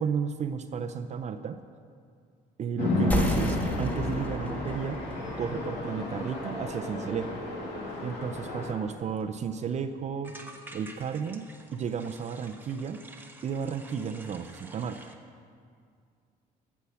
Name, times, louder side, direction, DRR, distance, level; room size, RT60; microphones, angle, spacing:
voice 1, 0.0-1.6 2.6-5.0 5.4-7.4 8.0-10.3 10.7-13.0 13.4-15.0, right 6 dB, 45° right, 9 dB, 0.5 m, -33 dB
Chatter / Traffic noise roadway noise / Train, 2.8-8.7, left 2 dB, 85° left, 2.2 m, -32 dB
sound 1, 3.1-8.2, equal, 10° left, 1.2 m, -35 dB
sound 2, 9.2-9.3 9.5-9.8 10.2-15.2, right 2 dB, 10° right, 1.0 m, -49 dB
14.5 x 7.1 x 5.7 m, 2.2 s
cardioid pair, 110°, 17 cm